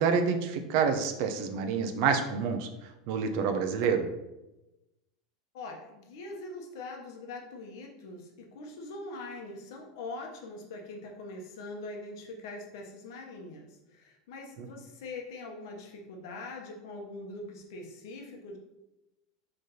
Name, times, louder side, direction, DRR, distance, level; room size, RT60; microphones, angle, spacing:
voice 1, 0.0-2.7 3.1-4.1 14.6-14.7, right 6 dB, 45° right, 7 dB, 0.5 m, -27 dB
voice 2, 5.5-18.6, left 2 dB, 65° left, 1 dB, 0.8 m, -43 dB
4.1 x 3.2 x 4.1 m, 0.96 s
supercardioid pair, 180°, 2 cm